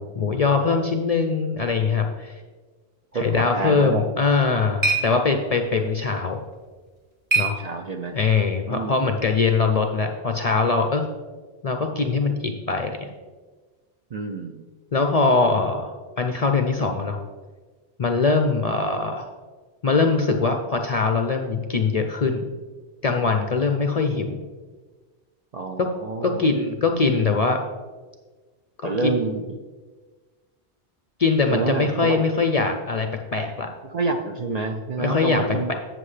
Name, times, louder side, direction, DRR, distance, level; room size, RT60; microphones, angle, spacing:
voice 1, 0.0-2.3 3.1-6.4 7.3-7.6 8.1-11.0 11.6-13.1 14.9-17.2 18.0-19.3 19.8-22.5 23.0-24.4 26.2-27.6 28.8-29.1 31.2-33.7 35.0-35.4 35.7-35.8, left 4 dB, 50° left, 5 dB, 0.5 m, -22 dB
voice 2, 3.1-4.1 7.4-8.2 8.7-8.9 14.1-14.7 25.5-26.5 28.8-29.6 31.5-32.2 33.8-35.7, right 3 dB, 50° right, 4 dB, 0.5 m, -28 dB
sound 1, 4.1-8.3, right 3 dB, 25° right, 1.2 m, -29 dB
7.7 x 7.7 x 3.2 m, 1.4 s
omnidirectional pair, 1.1 m